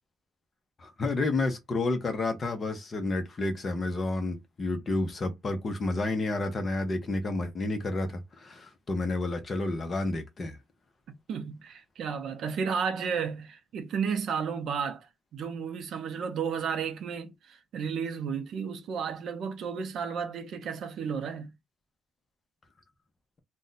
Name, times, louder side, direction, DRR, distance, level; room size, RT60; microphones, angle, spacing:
voice 1, 0.8-10.6, left 2 dB, 25° left, 0.7 m, -30 dB
voice 2, 11.1-21.5, right 6 dB, 55° right, 0.5 m, -33 dB
2.5 x 2.1 x 3.9 m
cardioid pair, 180°, 0 cm